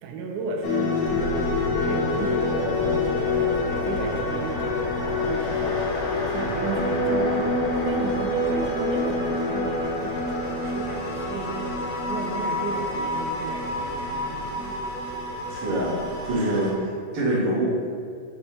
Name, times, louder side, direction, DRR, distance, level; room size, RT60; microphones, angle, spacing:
voice 1, 0.0-5.9 6.3-14.8, right 4 dB, 90° right, 2 dB, 2.1 m, -34 dB
sound 1, 0.6-16.7, left 3 dB, 85° left, 2.5 m, -27 dB
sound 2, 1.0-16.3, equal, 40° left, 2.0 m, -38 dB
sound 3, 2.4-16.8, right 2 dB, 70° right, 2.0 m, -39 dB
voice 2, 15.5-17.9, right 1 dB, 50° right, -7 dB, 2.1 m, -25 dB
6.8 x 5.2 x 3.2 m, 2.2 s
omnidirectional pair, 3.4 m